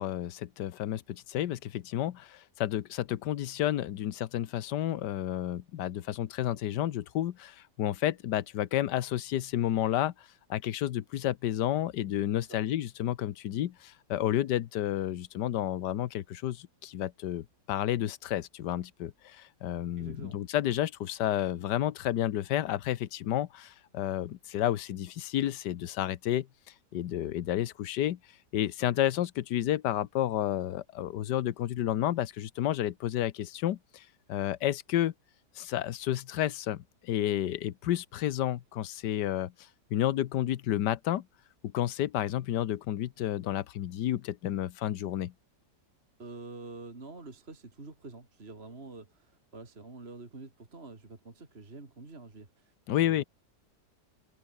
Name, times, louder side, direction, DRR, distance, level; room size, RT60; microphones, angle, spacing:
voice 1, 0.0-26.5 26.9-28.2 28.5-35.1 35.6-41.2 41.6-45.3 52.9-53.2, left 12 dB, 80° left, 1.5 m, -31 dB
voice 2, 20.0-20.4 46.2-53.2, right 3 dB, 35° right, 3.2 m, -47 dB
omnidirectional pair, 1.8 m